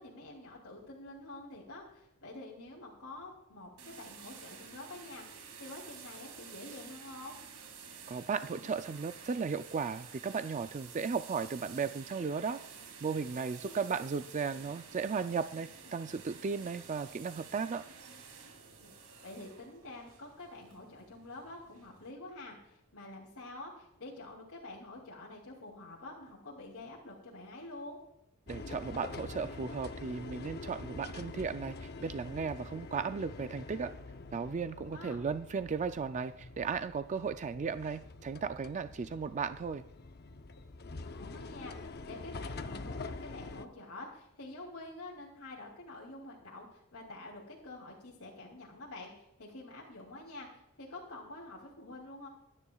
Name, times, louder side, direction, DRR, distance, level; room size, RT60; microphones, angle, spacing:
voice 1, 0.0-7.4 13.6-13.8 18.8-28.0 34.7-35.2 40.8-52.3, left 2 dB, 70° left, -4 dB, 2.9 m, -48 dB
sound 1, 3.8-22.1, right 6 dB, 80° right, 2.4 m, -51 dB
voice 2, 8.1-12.6 13.0-17.8 28.5-33.9 34.3-39.8, right 5 dB, 35° right, 10 dB, 0.3 m, -35 dB
sound 2, 28.5-43.6, left 3 dB, 45° left, 0.7 m, -45 dB
25.5 x 9.9 x 2.3 m, 0.84 s
head